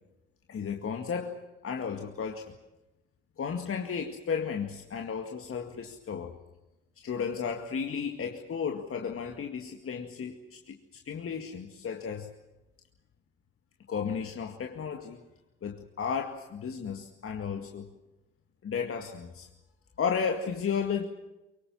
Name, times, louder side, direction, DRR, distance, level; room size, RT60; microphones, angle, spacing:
voice 1, 0.5-2.5 3.4-6.4 7.0-12.3 13.9-15.2 15.6-17.9 18.6-19.5 20.0-21.0, left 6 dB, 35° left, 3 dB, 2.2 m, -34 dB
24.0 x 23.5 x 7.4 m, 1.0 s
hypercardioid pair, 55°, 36 cm